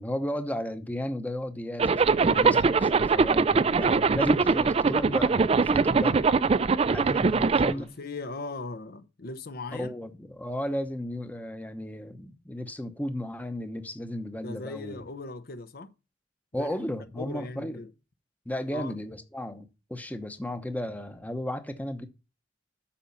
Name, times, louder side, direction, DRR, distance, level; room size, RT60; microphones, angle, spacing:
voice 1, 0.0-6.3 6.9-7.9 9.8-15.0 16.5-17.8 18.5-22.1, left 1 dB, 10° left, 0.8 m, -34 dB
Zipper (clothing), 1.8-7.7, right 4 dB, 30° right, 0.4 m, -22 dB
voice 2, 2.3-2.7 7.7-9.9 14.4-15.9 16.5-16.7 17.1-17.9 18.7-18.9, left 3 dB, 55° left, 0.8 m, -38 dB
8.7 x 6.1 x 5.3 m
head